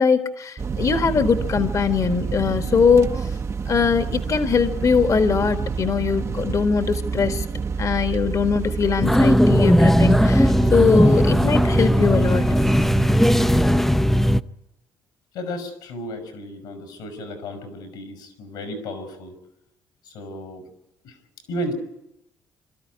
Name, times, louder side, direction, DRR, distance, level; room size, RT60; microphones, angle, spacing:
voice 1, 0.0-3.3 3.6-7.4 7.8-12.5, left 5 dB, 45° left, 7 dB, 1.7 m, -21 dB
sound 1, 0.6-13.8, right 5 dB, 40° right, 1.0 m, -28 dB
sound 2, 9.0-14.4, equal, 5° left, 0.7 m, -17 dB
voice 2, 15.3-19.4 20.0-20.7 21.0-21.2 21.5-21.7, equal, 80° left, 7 dB, 5.6 m, -33 dB
27.0 x 13.5 x 9.5 m, 0.89 s
supercardioid pair, 60°, 7 cm